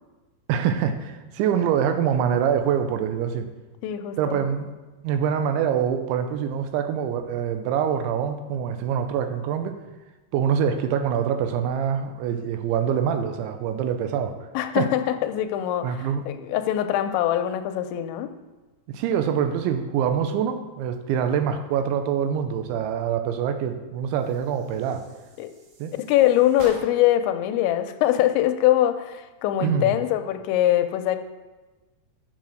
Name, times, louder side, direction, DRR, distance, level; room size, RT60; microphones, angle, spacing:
voice 1, 0.5-3.5 4.2-4.7 5.0-9.8 10.3-14.4 14.8-14.9 15.8-16.2 18.9-25.0 25.8-25.9 29.6-30.0, right 8 dB, 90° right, 8 dB, 3.0 m, -25 dB
voice 2, 3.8-4.4 14.5-18.3 25.4-25.5 25.9-31.2, left 12 dB, 85° left, 8 dB, 2.8 m, -23 dB
sound 1, 24.1-27.3, right 2 dB, 65° right, 2.9 m, -46 dB
7.5 x 7.4 x 6.3 m, 1.2 s
omnidirectional pair, 5.4 m